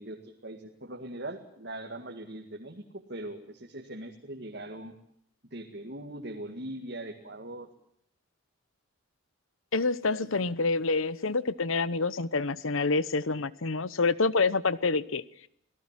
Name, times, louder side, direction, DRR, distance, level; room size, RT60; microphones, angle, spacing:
voice 1, 0.0-4.9 5.5-7.7 10.1-10.3, right 1 dB, 50° right, 2 dB, 2.1 m, -41 dB
voice 2, 9.7-15.2, left 3 dB, 70° left, 18 dB, 1.0 m, -27 dB
27.5 x 18.5 x 7.4 m, 0.69 s
head